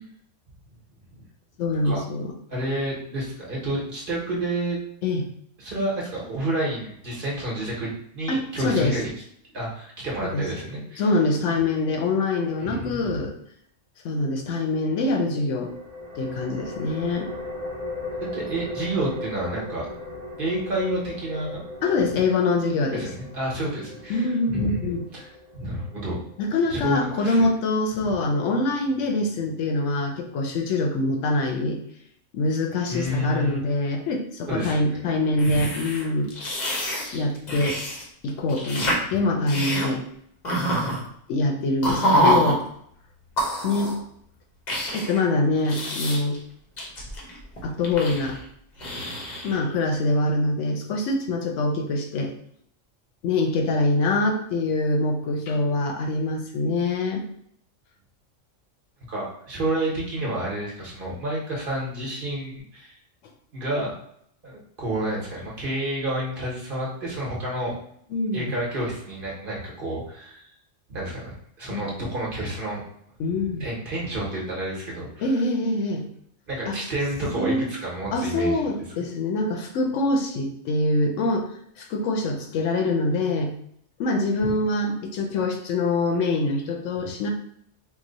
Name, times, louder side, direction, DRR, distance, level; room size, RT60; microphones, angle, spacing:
voice 1, 1.6-2.3 5.0-5.3 8.3-9.0 10.3-10.5 11.0-13.3 14.0-15.7 16.2-17.3 21.8-23.1 24.1-25.0 26.4-31.8 32.3-36.3 37.1-37.8 38.2-40.0 41.3-42.6 43.6-43.9 44.9-46.4 47.6-48.4 49.4-52.3 53.2-57.2 68.1-68.5 71.7-71.9 73.2-73.7 75.2-76.0 76.7-76.8 77.4-77.7 78.1-81.5 81.8-83.5 84.0-87.3, left 2 dB, 75° left, 2 dB, 0.9 m, -24 dB
voice 2, 2.5-4.8 5.6-9.0 9.5-11.0 12.6-13.3 18.3-19.9 20.4-21.6 22.9-25.3 25.5-26.2 26.7-27.4 32.9-33.6 34.5-35.0 35.3-35.6 59.1-62.9 63.5-63.9 64.4-67.8 68.3-70.5 70.9-72.8 73.6-75.3 76.5-78.7 84.4-84.5, right 1 dB, 45° right, -4 dB, 1.0 m, -30 dB
sound 1, 15.5-26.9, left 2 dB, 75° right, 0.3 m, -38 dB
sound 2, 35.4-38.0 38.3-39.0 39.5-39.9 40.4-41.0 41.8-42.6 43.4-44.0 44.7-45.2 45.6-46.4 46.8-48.5 48.8-49.6, equal, 45° left, 0.7 m, -26 dB
3.0 x 2.1 x 3.8 m, 0.69 s
omnidirectional pair, 1.3 m